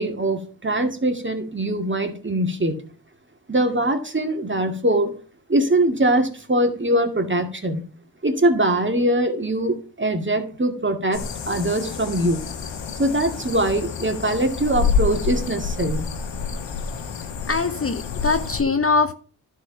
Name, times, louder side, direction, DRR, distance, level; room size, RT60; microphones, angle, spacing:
voice 1, 0.0-2.7 3.5-5.1 5.5-7.8 8.2-12.4 13.0-16.1, right 1 dB, 25° right, 6 dB, 2.3 m, -22 dB
sound 1, 11.1-18.6, left 5 dB, 75° left, 1.5 m, -28 dB
voice 2, 17.5-19.1, left 4 dB, 30° left, 9 dB, 0.9 m, -22 dB
11.5 x 5.1 x 5.8 m, 0.40 s
supercardioid pair, 40°, 44 cm